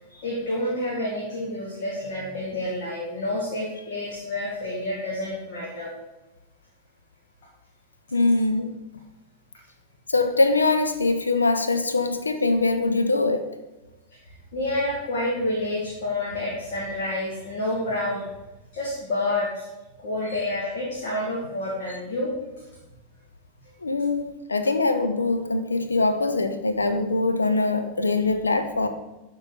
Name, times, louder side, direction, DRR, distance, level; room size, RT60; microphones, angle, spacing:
voice 1, 0.1-5.9 14.3-18.3 18.7-19.7 20.0-22.3, left 1 dB, 55° left, -4 dB, 1.7 m, -29 dB
voice 2, 8.1-8.8 10.1-13.5 23.8-28.9, left 3 dB, 80° left, 8 dB, 0.7 m, -23 dB
11.5 x 4.0 x 3.9 m, 1.0 s
figure-of-eight pair, 90°, 0 cm